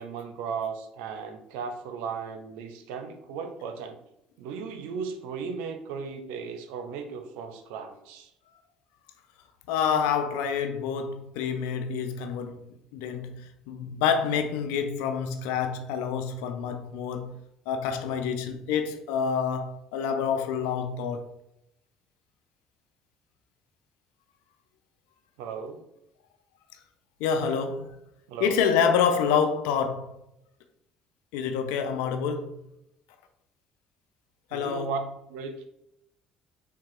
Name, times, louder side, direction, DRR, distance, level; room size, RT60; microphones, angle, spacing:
voice 1, 0.0-4.0 4.4-8.3 25.4-25.8 28.3-28.6 34.5-35.0 35.3-35.7, right 6 dB, 80° right, 0.5 m, -36 dB
voice 2, 9.7-12.6 12.9-17.4 17.7-21.2 27.2-28.0 28.4-30.2 31.3-32.6 34.5-35.0, left 6 dB, 85° left, 0.5 m, -27 dB
3.7 x 2.3 x 4.5 m
supercardioid pair, 70°, 3 cm